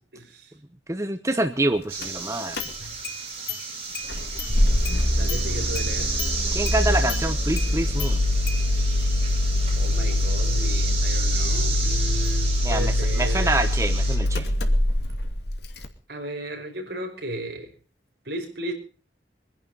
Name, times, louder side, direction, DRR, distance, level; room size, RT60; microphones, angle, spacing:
voice 1, 0.1-0.5 5.2-6.1 9.8-13.6 16.1-17.7 18.3-18.7, right 1 dB, 60° right, 3 dB, 5.5 m, -34 dB
voice 2, 0.9-2.6 6.5-8.2 12.6-14.5, right 2 dB, 15° right, 8 dB, 1.0 m, -26 dB
sound 1, 1.9-14.2, right 4 dB, 30° right, 6.7 m, -33 dB
Engine starting, 2.0-2.1 2.5-3.2 3.5-3.6 3.9-15.9, left 1 dB, 60° left, 2.4 m, -24 dB
23.5 x 11.0 x 5.5 m, 0.39 s
head